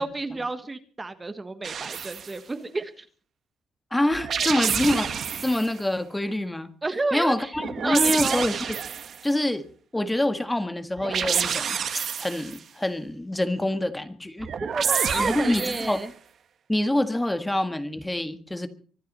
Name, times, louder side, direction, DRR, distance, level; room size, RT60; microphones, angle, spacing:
voice 1, 0.0-3.0 6.8-7.5 7.8-8.4 14.6-16.1, right 3 dB, 20° right, 10 dB, 1.4 m, -30 dB
sound 1, 1.6-2.3 4.1-5.7 7.5-9.2 11.0-12.6 14.4-16.0, right 7 dB, 60° right, 1.8 m, -28 dB
voice 2, 3.9-6.7 7.1-8.8 9.2-9.6 9.9-11.8 12.2-14.5 15.1-16.0 16.7-18.7, left 1 dB, 10° left, 10 dB, 1.7 m, -26 dB
24.5 x 9.3 x 5.5 m, 0.44 s
cardioid pair, 90°, 0 cm